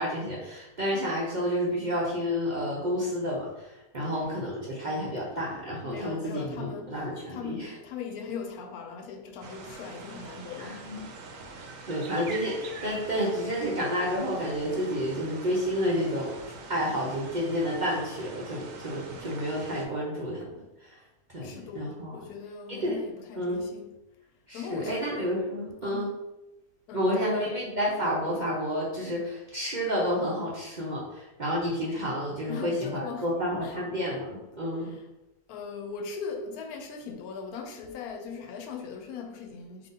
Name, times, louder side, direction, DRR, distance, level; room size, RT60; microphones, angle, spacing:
voice 1, 0.0-7.8 10.6-11.0 11.5-16.4 16.7-20.5 20.8-20.9 21.3-22.2 22.7-23.0 23.3-23.6 24.5-26.1 26.9-34.9, equal, 45° right, 0.6 m, -30 dB
voice 2, 5.8-6.9 7.3-10.8 21.4-23.9 24.5-25.1 25.8-26.1 26.9-27.3 32.5-33.3 33.6-33.7 35.5-39.9, left 5 dB, 80° left, 1.1 m, -39 dB
sound 1, 9.4-19.9, right 3 dB, 70° right, 0.9 m, -44 dB
3.9 x 2.7 x 3.8 m
omnidirectional pair, 1.6 m